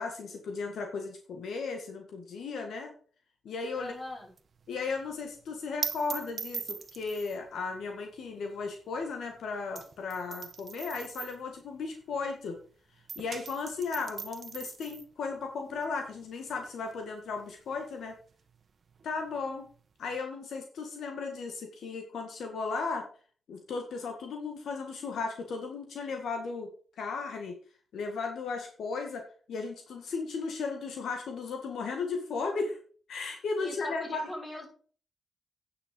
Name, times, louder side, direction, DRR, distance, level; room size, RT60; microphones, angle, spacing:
voice 1, 0.0-2.9 3.4-3.9 4.7-12.6 13.2-18.1 19.0-19.6 20.0-23.1 23.5-26.7 27.0-27.6 27.9-32.8 33.1-34.3, left 4 dB, 80° left, 4 dB, 1.9 m, -35 dB
voice 2, 3.8-4.3 33.6-34.7, left 1 dB, 20° left, -1 dB, 6.3 m, -40 dB
sound 1, 3.8-12.7 12.9-20.2, right 5 dB, 55° right, 1.2 m, -43 dB
9.5 x 6.9 x 5.4 m, 0.42 s
cardioid pair, 75°, 0 cm